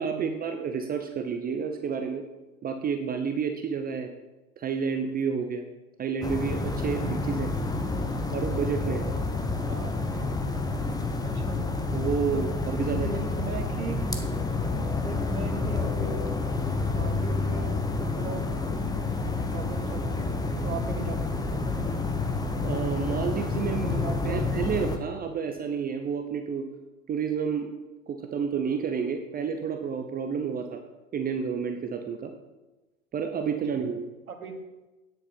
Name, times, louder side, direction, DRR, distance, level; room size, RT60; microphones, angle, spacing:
voice 1, 0.0-2.2 2.6-4.1 4.6-5.7 6.0-7.5 8.3-9.1 11.9-13.1 22.6-23.9 24.2-26.6 27.1-27.7 28.1-30.8 31.1-32.3 33.1-34.1, right 6 dB, 20° right, 6 dB, 0.8 m, -30 dB
sound 1, 6.2-25.0, left 3 dB, 10° left, 1.0 m, -29 dB
voice 2, 11.2-11.6 12.3-12.5 13.0-14.0 15.0-16.2 16.9-18.4 19.5-20.3 20.6-21.7 23.7-24.8 34.3-34.5, right 4 dB, 85° right, 6 dB, 1.7 m, -38 dB
9.6 x 8.0 x 5.9 m, 1.1 s
hypercardioid pair, 100°, 42 cm